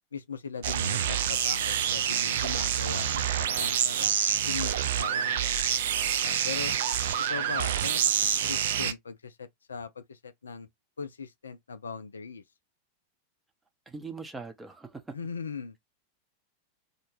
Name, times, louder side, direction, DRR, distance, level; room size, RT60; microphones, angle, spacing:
voice 1, 0.1-4.2 4.5-6.7 7.3-10.7 11.0-12.4 15.1-15.8, left 5 dB, 70° left, 0.3 m, -39 dB
sound 1, 0.6-8.9, right 9 dB, 55° right, 0.4 m, -27 dB
voice 2, 13.9-15.2, right 4 dB, 10° right, 0.6 m, -41 dB
2.5 x 2.2 x 3.0 m
figure-of-eight pair, 90°, 0 cm